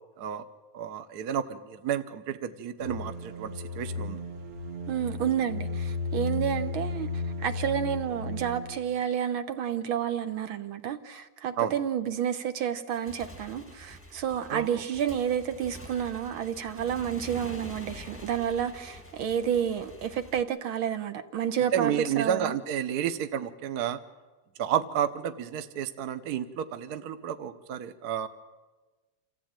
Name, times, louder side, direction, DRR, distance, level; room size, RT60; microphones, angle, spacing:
voice 1, 0.7-4.2 11.6-11.7 14.5-14.8 21.7-24.0 24.6-28.3, right 9 dB, 55° right, 1.3 m, -31 dB
sound 1, 2.8-8.8, left 3 dB, 35° right, 1.2 m, -34 dB
voice 2, 4.9-7.1 7.4-22.5, right 9 dB, 75° right, 1.8 m, -30 dB
Motorcycle / Engine, 12.9-20.4, left 1 dB, 10° left, 1.0 m, -46 dB
27.5 x 15.0 x 8.9 m
omnidirectional pair, 2.3 m